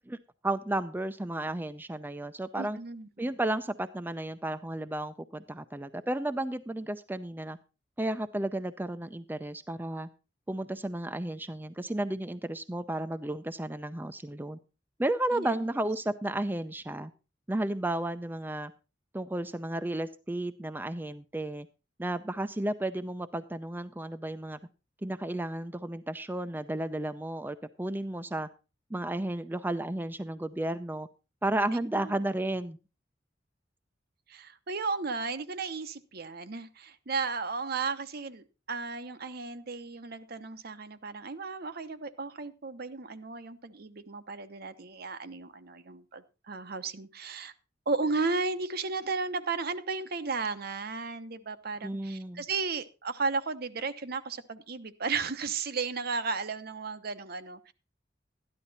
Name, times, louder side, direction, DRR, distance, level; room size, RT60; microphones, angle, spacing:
voice 1, 0.4-2.8 3.2-7.6 8.0-10.1 10.5-14.6 15.0-17.1 17.5-18.7 19.1-21.7 22.0-24.6 25.0-28.5 28.9-31.1 31.4-32.8 51.8-52.4, right 1 dB, 10° right, 10 dB, 0.5 m, -33 dB
voice 2, 2.6-3.1 15.3-15.7 31.7-31.8 32.1-32.2 34.3-47.5 47.9-57.7, right 4 dB, 55° right, 11 dB, 0.9 m, -34 dB
13.0 x 10.5 x 4.1 m, 0.31 s
head